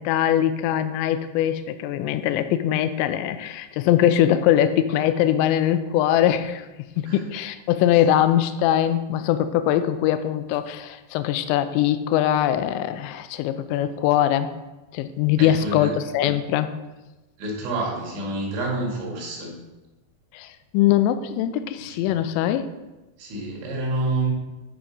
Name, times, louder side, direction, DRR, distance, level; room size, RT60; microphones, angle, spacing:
voice 1, 0.0-6.7 7.0-14.5 14.9-16.7 20.3-22.7, left 11 dB, 85° left, 10 dB, 2.8 m, -22 dB
voice 2, 15.4-15.9 17.4-19.6 23.2-24.3, right 2 dB, 80° right, -2 dB, 4.4 m, -28 dB
10.5 x 4.9 x 5.2 m, 1.1 s
omnidirectional pair, 5.2 m